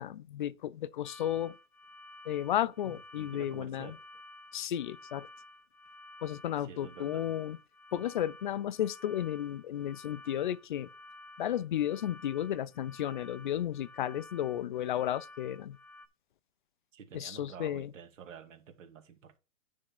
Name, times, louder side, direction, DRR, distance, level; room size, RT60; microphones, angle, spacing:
voice 1, 0.0-1.6 2.3-3.9 4.5-5.3 6.2-7.6 7.9-10.9 11.4-15.8 17.1-17.9, left 11 dB, 40° left, 0.4 m, -33 dB
sound 1, 1.0-16.1, left 2 dB, 5° left, 0.9 m, -53 dB
voice 2, 2.8-4.0 6.6-7.3 16.9-19.4, right 7 dB, 65° right, 2.2 m, -49 dB
9.6 x 3.7 x 6.0 m
hypercardioid pair, 155°, 41 cm